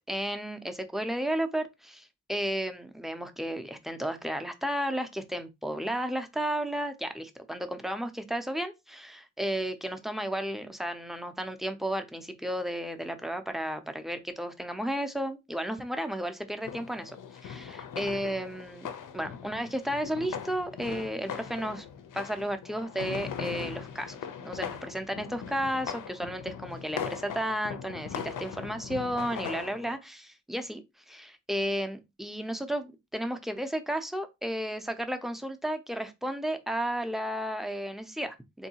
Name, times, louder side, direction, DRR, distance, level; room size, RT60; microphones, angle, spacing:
voice 1, 0.1-17.2 17.4-18.9 19.1-21.9 22.1-24.2 24.4-38.7, equal, ahead, 0.4 m, -33 dB
sound 1, 16.6-30.0, left 8 dB, 90° left, 0.5 m, -40 dB
3.6 x 2.6 x 2.7 m
wide cardioid pair, 135°, 31 cm